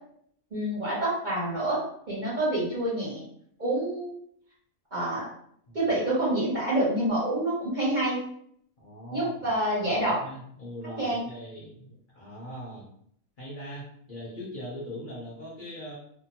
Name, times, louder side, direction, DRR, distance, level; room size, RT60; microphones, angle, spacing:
voice 1, 0.5-1.8 2.1-3.2 3.6-4.1 4.9-5.2 5.7-8.2 9.1-10.2 11.0-11.2, right 1 dB, 40° right, -7 dB, 0.9 m, -27 dB
voice 2, 8.8-9.5 9.9-12.9 13.4-15.9, equal, 45° left, -7 dB, 0.8 m, -41 dB
2.7 x 2.0 x 2.8 m, 0.66 s
omnidirectional pair, 1.4 m